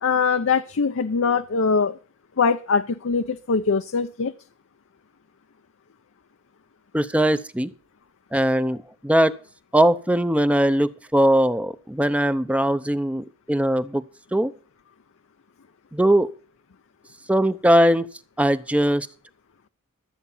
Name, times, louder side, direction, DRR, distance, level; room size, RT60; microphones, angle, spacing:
voice 1, 0.0-2.0 2.4-4.3, left 5 dB, 65° left, 0.6 m, -22 dB
voice 2, 6.9-7.7 8.3-9.4 9.7-14.5 15.9-16.3 17.3-18.1 18.4-19.1, right 1 dB, 5° right, 0.6 m, -20 dB
13.5 x 8.1 x 5.6 m
head